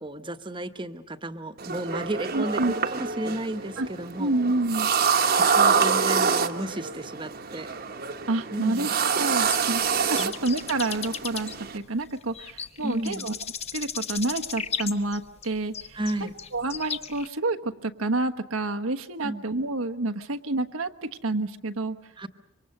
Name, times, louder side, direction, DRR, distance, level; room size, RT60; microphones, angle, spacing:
voice 1, 0.0-4.3 5.3-7.7 8.5-8.9 10.2-10.3 12.8-13.2 15.9-16.4 19.2-19.5 22.2-22.3, right 1 dB, 25° right, 8 dB, 1.1 m, -33 dB
sound 1, 1.6-11.8, right 6 dB, 45° right, 1.2 m, -26 dB
voice 2, 2.3-2.7 3.8-3.9 4.2-4.9 8.3-13.3 13.7-22.0, right 2 dB, 85° right, 6 dB, 1.3 m, -29 dB
sound 2, 9.5-17.3, left 7 dB, 30° left, 0.9 m, -36 dB
26.5 x 24.5 x 6.7 m, 0.82 s
head